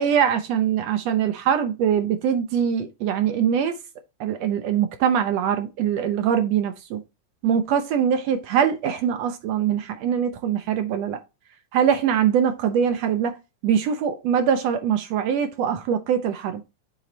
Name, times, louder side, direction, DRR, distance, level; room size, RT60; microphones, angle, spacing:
voice 1, 0.0-3.7 4.2-7.0 7.4-11.2 11.7-13.3 13.6-16.6, right 8 dB, 75° right, 1.5 m, -22 dB
7.6 x 3.9 x 3.2 m
omnidirectional pair, 3.7 m